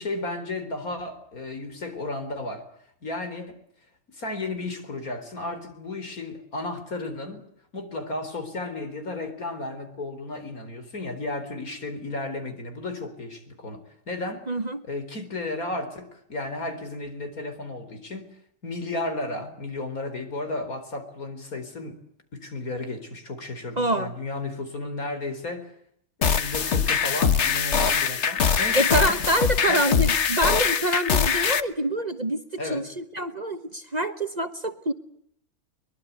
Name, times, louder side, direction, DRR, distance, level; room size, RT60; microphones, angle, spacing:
voice 1, 0.0-2.6 3.0-3.6 4.1-7.4 7.7-14.4 14.8-18.3 18.6-22.0 22.3-25.7 26.3-29.1 29.7-29.9 32.6-32.8, left 2 dB, 70° left, 8 dB, 4.6 m, -33 dB
voice 2, 14.5-14.8 23.8-24.1 28.7-32.4 32.7-34.9, right 1 dB, 30° right, 10 dB, 1.3 m, -26 dB
sound 1, 26.2-31.6, left 6 dB, 50° left, 1.4 m, -23 dB
23.5 x 22.0 x 8.2 m, 0.71 s
omnidirectional pair, 1.5 m